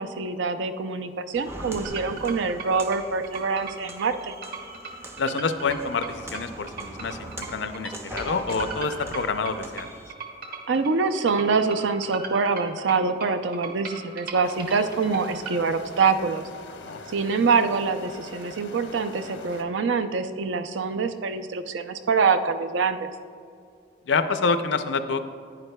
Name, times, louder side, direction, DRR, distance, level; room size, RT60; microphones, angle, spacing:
voice 1, 0.0-4.3 10.7-16.4 17.1-23.1, right 4 dB, 80° right, 10 dB, 0.5 m, -25 dB
Walk footsteps, 1.3-10.1, right 1 dB, 15° right, 0.4 m, -41 dB
sound 1, 1.8-15.6, right 4 dB, 50° right, 1.2 m, -38 dB
voice 2, 5.2-9.9 16.8-17.0 24.1-25.2, left 4 dB, 70° left, 10 dB, 0.5 m, -27 dB
sound 2, 14.4-19.6, left 3 dB, 90° left, 0.9 m, -43 dB
10.5 x 9.5 x 2.2 m, 2.3 s
head